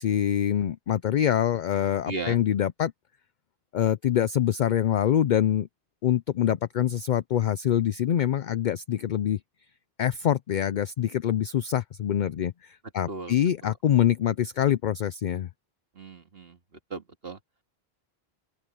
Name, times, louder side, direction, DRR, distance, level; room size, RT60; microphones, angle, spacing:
voice 1, 0.0-2.9 3.7-5.7 6.0-9.4 10.0-15.5, left 10 dB, 55° left, 0.6 m, -25 dB
voice 2, 2.1-2.4 13.1-13.3 13.6-13.7 15.9-16.6 16.9-17.4, right 3 dB, 65° right, 2.3 m, -36 dB
open air
omnidirectional pair, 1.1 m